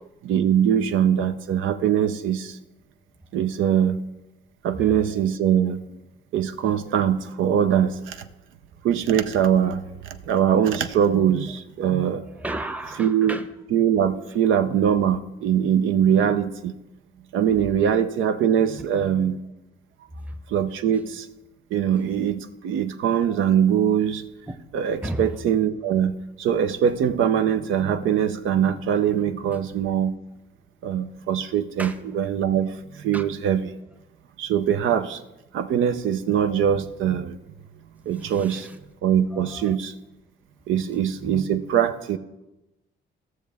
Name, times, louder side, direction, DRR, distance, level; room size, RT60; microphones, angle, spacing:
voice 1, 0.2-2.6 3.3-4.0 4.6-5.8 6.3-8.3 8.8-12.3 13.0-13.4 13.7-16.7 17.3-19.4 20.5-21.3 21.7-24.2 24.7-30.1 30.8-33.7 34.4-35.2 35.5-37.4 38.1-38.7 39.0-39.9 40.7-42.2, right 9 dB, 80° right, 9 dB, 0.6 m, -22 dB
voice 2, 12.2-13.5 14.3-14.4 17.8-17.9 20.2-20.4 23.3-23.4 24.5-24.6 25.0-25.4 31.8-32.5 33.1-33.3 38.0-38.8 39.3-39.8 40.7-41.0, right 1 dB, 5° right, 8 dB, 0.8 m, -35 dB
16.0 x 6.4 x 3.5 m, 0.97 s
cardioid pair, 90°, 20 cm